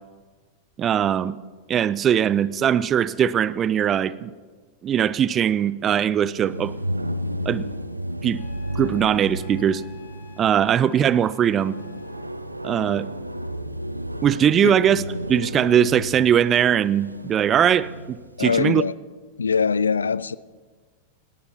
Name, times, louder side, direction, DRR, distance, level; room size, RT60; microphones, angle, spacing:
voice 1, 0.8-1.4 1.7-4.3 4.8-6.7 7.5-7.6 8.2-8.4 8.7-9.8 10.4-11.8 12.6-13.1 14.2-15.0 15.3-18.8, right 9 dB, 25° right, 0.4 m, -20 dB
sound 1, 6.3-18.3, equal, 85° right, 0.6 m, -33 dB
Wind instrument woodwind instrument, 8.3-12.2, left 4 dB, 40° left, 2.1 m, -50 dB
voice 2, 18.4-18.9 19.4-20.4, left 5 dB, 75° left, 0.3 m, -22 dB
19.0 x 18.0 x 2.9 m
figure-of-eight pair, 90°, 0 cm